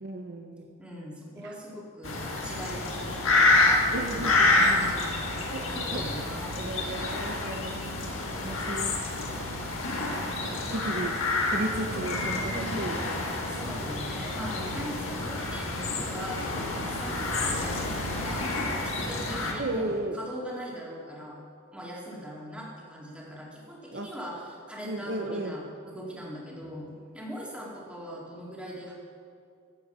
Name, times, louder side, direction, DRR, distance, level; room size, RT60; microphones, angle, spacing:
voice 1, 0.0-0.7 1.4-1.5 3.9-4.5 5.4-6.1 6.6-8.1 8.4-9.0 10.4-11.2 11.5-13.2 19.6-20.2 23.9-24.1 24.8-25.6, right 2 dB, 55° right, 4 dB, 0.7 m, -34 dB
voice 2, 0.8-5.1 5.6-6.6 12.5-12.9 13.5-18.5 18.8-21.4 21.7-28.9, equal, 5° right, -5 dB, 2.2 m, -40 dB
sound 1, 2.0-19.5, left 2 dB, 80° left, 1.7 m, -28 dB
14.0 x 7.8 x 5.4 m, 2.4 s
head